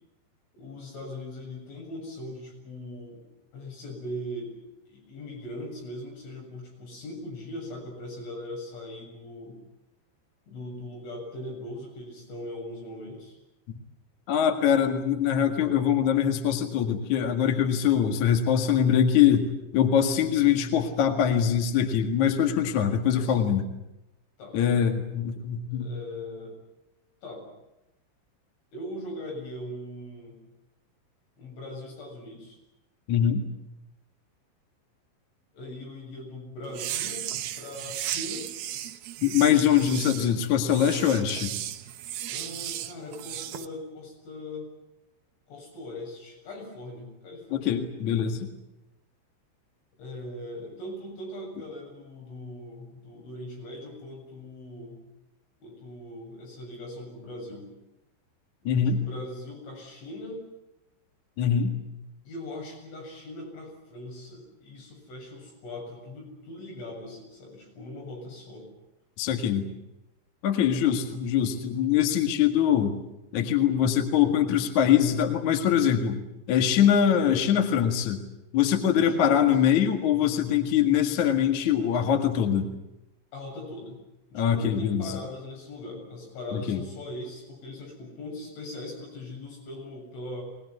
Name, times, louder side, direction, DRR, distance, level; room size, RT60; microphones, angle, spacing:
voice 1, 0.5-3.2 3.5-4.6 4.9-9.6 10.5-13.4 21.2-21.5 23.1-23.5 24.4-24.6 25.7-26.6 27.2-27.5 28.7-30.4 31.4-32.6 35.5-38.5 42.3-44.7 45.5-47.7 50.0-55.0 55.6-57.7 58.6-60.5 62.2-68.7 77.1-77.4 79.0-79.6 83.3-84.0 84.3-90.4, left 1 dB, 75° left, -1 dB, 9.9 m, -40 dB
voice 2, 14.3-23.6 24.5-25.9 33.1-33.5 39.2-41.5 47.5-48.5 58.6-59.0 61.4-61.7 69.2-69.6 70.4-73.0 73.3-76.2 76.5-78.2 78.5-82.7 84.3-85.2 86.5-86.8, left 9 dB, 50° left, 5 dB, 2.6 m, -23 dB
sound 1, 36.7-43.7, right 12 dB, 70° right, 2.7 m, -35 dB
23.5 x 20.0 x 9.7 m, 0.92 s
omnidirectional pair, 5.5 m